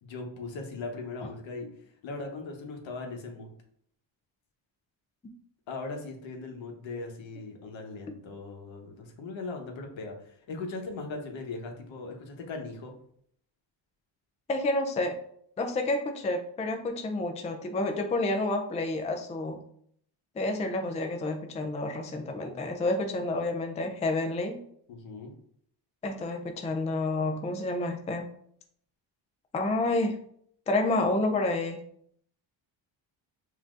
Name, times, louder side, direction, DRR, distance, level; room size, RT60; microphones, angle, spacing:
voice 1, 0.0-1.7 2.0-3.5 5.7-12.9 24.9-25.3, left 3 dB, 70° left, 3 dB, 1.0 m, -39 dB
voice 2, 14.5-15.2 15.6-19.6 20.4-24.6 26.0-28.3 29.5-30.2 30.7-31.8, left 2 dB, 15° left, 4 dB, 0.4 m, -29 dB
5.6 x 2.7 x 2.5 m, 0.65 s
cardioid pair, 110°, 49 cm